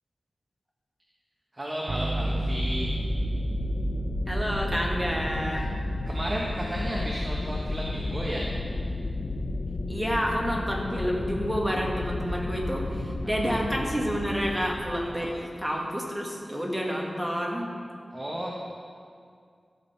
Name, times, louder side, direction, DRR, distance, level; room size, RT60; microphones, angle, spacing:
voice 1, 1.5-3.0 5.5-5.6 6.1-8.6 13.2-13.4 15.2-15.3 18.1-18.6, equal, 25° right, -3 dB, 1.2 m, -33 dB
sound 1, 1.9-11.8, right 2 dB, 50° right, 0.7 m, -34 dB
sound 2, 2.2-15.2, left 2 dB, 60° left, 0.8 m, -33 dB
voice 2, 4.3-5.7 9.9-17.7, equal, ahead, -1 dB, 1.7 m, -29 dB
15.0 x 6.2 x 4.4 m, 2.2 s
wide cardioid pair, 85°, 0 cm